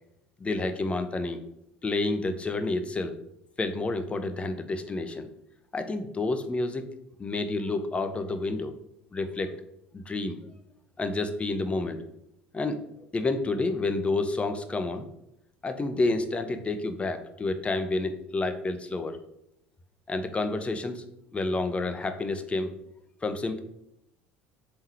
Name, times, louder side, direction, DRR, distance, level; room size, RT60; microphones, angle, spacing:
voice 1, 0.4-1.4 1.8-3.2 3.6-5.3 5.7-6.9 7.2-8.7 9.1-9.6 9.9-10.4 11.0-12.0 12.5-15.1 15.6-19.2 20.1-21.0 21.3-22.7 23.2-23.6, left 2 dB, 20° left, 8 dB, 0.6 m, -29 dB
4.2 x 3.7 x 3.1 m, 0.78 s
figure-of-eight pair, 65°, 6 cm